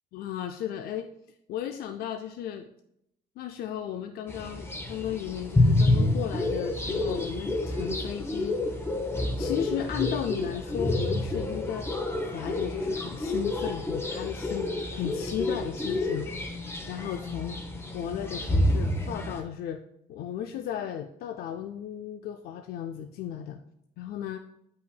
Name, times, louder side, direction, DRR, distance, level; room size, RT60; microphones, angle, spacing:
voice 1, 0.1-1.1 1.5-2.7 3.4-8.8 9.4-11.9 12.2-16.3 16.9-17.6 17.9-19.8 20.1-23.6 24.0-24.4, left 10 dB, 65° left, 6 dB, 0.4 m, -35 dB
sound 1, 4.3-19.4, left 2 dB, 15° left, 0.8 m, -28 dB
8.2 x 5.6 x 2.2 m, 0.78 s
cardioid pair, 110°, 17 cm